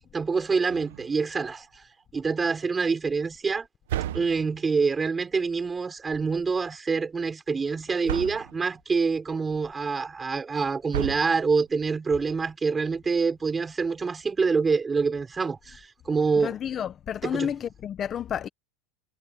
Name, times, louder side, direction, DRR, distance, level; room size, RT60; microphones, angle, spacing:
voice 1, 0.1-1.7 2.1-3.7 4.1-16.5 17.2-17.5, right 4 dB, 15° right, 3.9 m, -26 dB
door slam distant roomy boom, 0.7-1.3 3.9-4.8 8.1-8.7 10.9-11.7, right 12 dB, 85° right, 1.3 m, -33 dB
voice 2, 16.4-18.5, left 9 dB, 30° left, 1.1 m, -31 dB
supercardioid pair, 130°, 0 cm